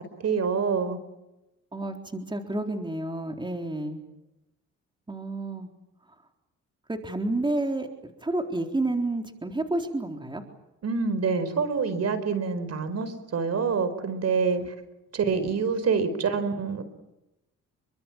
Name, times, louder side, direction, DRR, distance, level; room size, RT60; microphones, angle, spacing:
voice 1, 0.2-1.0 10.8-14.7 15.1-16.8, right 5 dB, 55° right, 12 dB, 4.7 m, -26 dB
voice 2, 1.7-4.0 5.1-5.7 6.9-7.9 8.2-10.4 14.6-14.7 15.3-15.5, right 2 dB, 15° right, 3 dB, 4.1 m, -30 dB
29.0 x 24.5 x 7.4 m, 0.94 s
cardioid pair, 90°, 30 cm